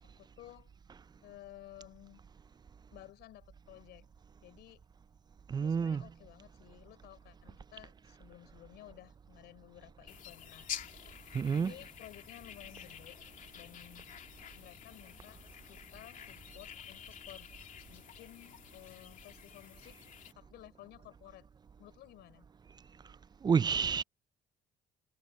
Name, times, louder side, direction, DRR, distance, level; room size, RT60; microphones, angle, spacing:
voice 1, 0.2-0.8 1.2-2.2 2.9-4.1 4.4-4.8 5.5-10.7 11.5-13.2 13.5-14.1 14.5-15.4 15.7-17.5 17.9-20.0 20.3-21.5 21.8-22.5, left 15 dB, 80° left, 5.8 m, -54 dB
voice 2, 5.5-6.0 11.3-11.7 23.4-24.0, right 6 dB, 25° right, 0.4 m, -29 dB
sound 1, 10.1-20.3, left 9 dB, 50° left, 2.9 m, -49 dB
cardioid pair, 110°, 17 cm